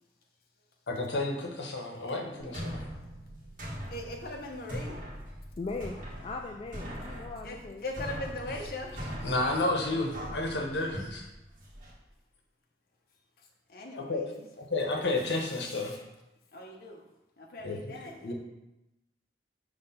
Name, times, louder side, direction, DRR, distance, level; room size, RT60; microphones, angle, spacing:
voice 1, 0.9-2.8 9.2-11.2 14.1-14.3 14.6-16.0 17.6-17.8 18.2-18.3, left 2 dB, 80° left, 1 dB, 1.1 m, -31 dB
sound 1, 2.4-11.9, equal, 50° right, 1.6 m, -41 dB
voice 2, 3.9-5.0 7.4-9.0 13.4-14.5 15.7-16.0 16.5-17.1 17.4-18.3, left 2 dB, 55° left, 1 dB, 0.9 m, -40 dB
voice 3, 5.6-7.8, left 3 dB, 30° left, 2 dB, 0.3 m, -39 dB
5.9 x 3.3 x 5.6 m, 0.94 s
head